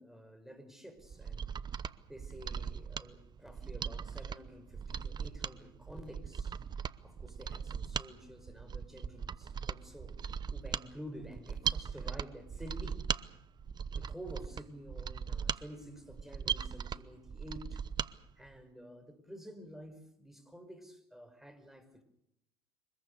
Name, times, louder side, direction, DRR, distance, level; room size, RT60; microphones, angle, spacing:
voice 1, 0.0-1.5 2.1-6.6 7.0-10.2 10.5-13.0 14.0-17.8 18.4-22.0, equal, 5° right, 8 dB, 5.5 m, -50 dB
Mechanisms, 1.0-18.1 18.5-18.6, right 7 dB, 35° right, 0.9 m, -39 dB
24.5 x 21.0 x 6.9 m, 0.78 s
hypercardioid pair, 65°, 12 cm